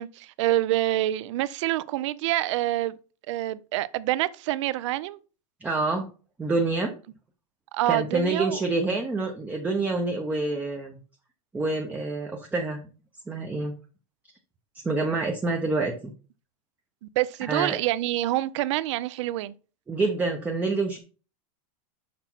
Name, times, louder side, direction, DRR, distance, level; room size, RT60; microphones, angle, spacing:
voice 1, 0.0-3.0 3.3-5.2 7.7-8.6 17.2-19.5, right 15 dB, 60° right, 0.5 m, -26 dB
voice 2, 5.6-6.1 6.4-6.9 7.9-11.0 11.5-12.8 13.3-13.7 14.8-16.1 17.5-17.8 19.9-21.0, right 3 dB, 10° right, 0.6 m, -27 dB
5.9 x 5.7 x 4.4 m
supercardioid pair, 160°, 17 cm